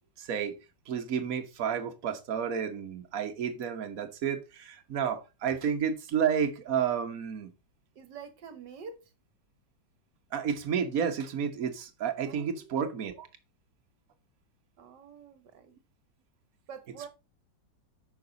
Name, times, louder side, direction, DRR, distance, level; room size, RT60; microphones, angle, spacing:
voice 1, 0.2-0.6 0.9-7.5 10.3-13.3, right 7 dB, 50° right, 1.5 m, -31 dB
voice 2, 8.0-9.1 12.3-12.8 14.8-15.8 16.7-17.1, right 6 dB, 65° right, 1.7 m, -46 dB
9.1 x 6.0 x 3.9 m
omnidirectional pair, 2.0 m